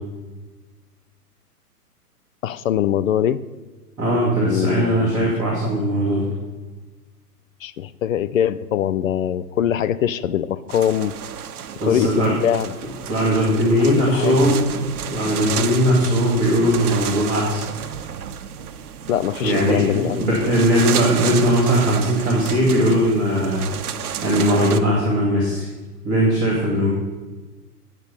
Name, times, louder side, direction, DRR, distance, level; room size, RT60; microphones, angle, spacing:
voice 1, 2.4-3.4 4.4-5.3 7.6-11.2 11.8-12.8 13.9-14.5 19.1-20.3, left 10 dB, 55° left, 15 dB, 0.5 m, -22 dB
voice 2, 4.0-6.3 11.8-12.4 13.1-14.6 15.1-17.6 19.4-23.6 24.2-25.7 26.0-26.9, equal, ahead, -19 dB, 0.3 m, -19 dB
sound 1, 10.7-24.8, right 8 dB, 65° right, 0.8 m, -31 dB
9.1 x 6.1 x 5.4 m, 1.3 s
hypercardioid pair, 120°, 48 cm